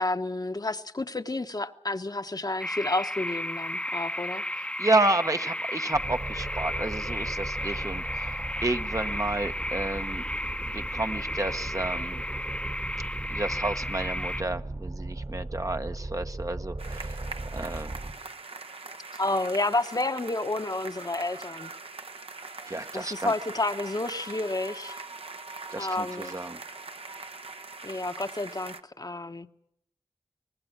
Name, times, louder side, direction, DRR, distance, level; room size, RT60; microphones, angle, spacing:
voice 1, 0.0-4.4 19.1-21.7 22.9-24.9 25.8-26.4 27.8-29.5, left 2 dB, 40° left, 1.1 m, -30 dB
sound 1, 2.6-14.4, left 1 dB, 10° left, 0.9 m, -33 dB
voice 2, 4.6-10.2 10.7-12.2 13.3-17.2 17.5-17.9 22.6-23.3 25.7-26.6, right 2 dB, 35° right, 1.0 m, -31 dB
sound 2, 5.9-18.1, right 2 dB, 50° right, 2.1 m, -37 dB
sound 3, 16.8-28.8, right 3 dB, 70° right, 1.3 m, -42 dB
24.5 x 19.5 x 6.0 m
cardioid pair, 40°, 10 cm